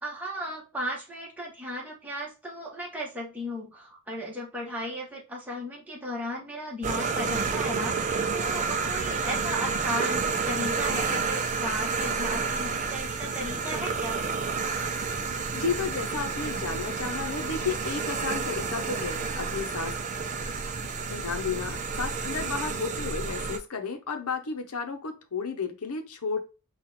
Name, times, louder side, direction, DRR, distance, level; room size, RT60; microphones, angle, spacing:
voice 1, 0.0-14.2, equal, 5° right, -4 dB, 1.2 m, -35 dB
sound 1, 6.8-23.6, right 4 dB, 35° right, 0.4 m, -30 dB
voice 2, 15.5-19.9 21.1-26.4, left 5 dB, 80° left, 5 dB, 0.8 m, -32 dB
4.2 x 2.4 x 4.0 m, 0.31 s
head